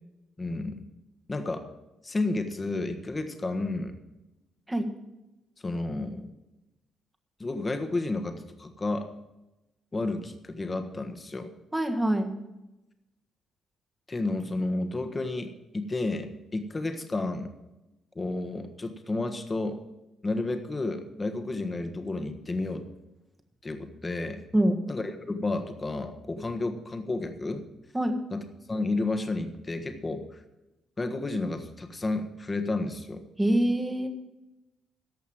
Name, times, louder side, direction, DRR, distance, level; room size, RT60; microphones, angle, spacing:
voice 1, 0.4-0.8 1.3-1.6 2.0-4.0 5.6-6.3 7.4-9.1 9.9-11.5 14.1-17.5 18.1-19.8 20.2-22.8 23.6-24.4 24.9-27.6 28.3-28.4 28.7-30.4 31.0-33.2, left 2 dB, 25° left, 7 dB, 1.5 m, -31 dB
voice 2, 11.7-12.3 24.5-24.8 27.9-28.1 33.4-34.1, right 1 dB, 10° right, 5 dB, 1.7 m, -24 dB
14.0 x 5.5 x 8.8 m, 0.97 s
cardioid pair, 90°, 0 cm